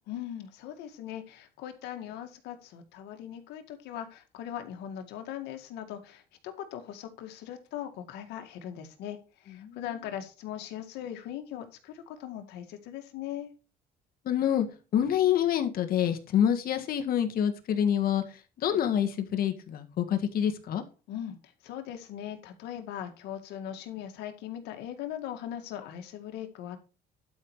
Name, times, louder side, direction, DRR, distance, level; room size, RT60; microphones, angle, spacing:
voice 1, 0.1-9.2 9.4-13.5 21.1-21.3 21.6-26.8, left 10 dB, 90° left, 7 dB, 1.9 m, -40 dB
voice 2, 14.3-14.7 14.9-18.2 18.6-20.8, left 9 dB, 60° left, 7 dB, 1.8 m, -26 dB
11.5 x 5.5 x 4.8 m, 0.33 s
cardioid pair, 110°, 17 cm